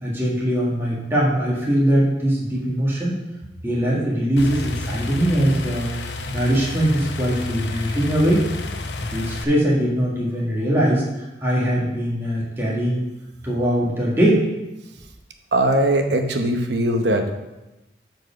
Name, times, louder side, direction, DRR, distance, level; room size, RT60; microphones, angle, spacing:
voice 1, 0.0-3.1 3.6-5.9 6.3-8.5 9.0-13.1 13.4-14.4, equal, 15° right, -6 dB, 1.7 m, -21 dB
sound 1, 4.4-9.4, left 3 dB, 85° left, 0.7 m, -30 dB
voice 2, 15.5-17.3, right 1 dB, 80° right, 5 dB, 0.9 m, -20 dB
7.9 x 4.7 x 5.7 m, 1.0 s
head